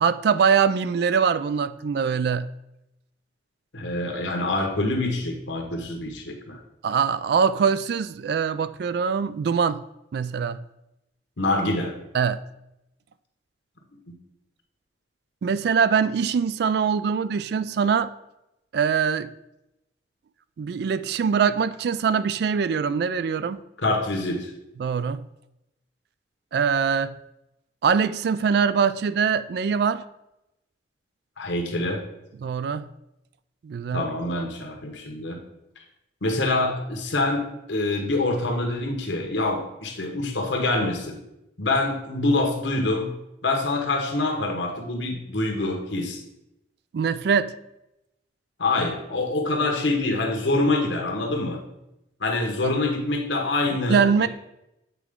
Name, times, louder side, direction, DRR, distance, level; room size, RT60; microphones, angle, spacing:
voice 1, 0.0-2.5 6.8-9.8 10.1-10.6 12.1-12.4 15.4-18.1 18.7-19.3 20.6-23.6 24.8-25.2 26.5-27.1 27.8-30.0 32.4-32.8 33.6-34.1 46.9-47.5 52.6-52.8 53.7-54.3, right 6 dB, 60° right, 14 dB, 0.3 m, -23 dB
voice 2, 3.7-6.6 11.4-11.9 23.8-24.5 31.4-32.0 33.9-35.4 36.2-37.4 37.7-41.2 41.6-43.1 43.4-46.2 48.6-51.6 52.2-54.3, left 2 dB, 80° left, 2 dB, 1.2 m, -25 dB
8.2 x 4.5 x 3.6 m, 0.88 s
head